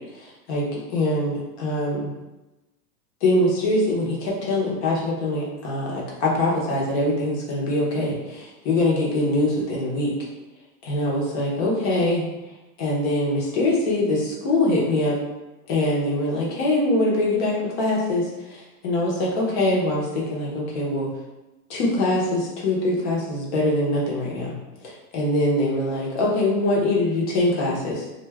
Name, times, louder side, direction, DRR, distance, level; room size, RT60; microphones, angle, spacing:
voice 1, 0.9-2.1 3.2-10.1 10.8-12.2 12.8-15.2 15.7-21.1 21.7-24.6 25.1-28.0, left 1 dB, 45° left, -3 dB, 0.9 m, -23 dB
2.4 x 2.4 x 3.3 m, 1.0 s
supercardioid pair, 155°, 49 cm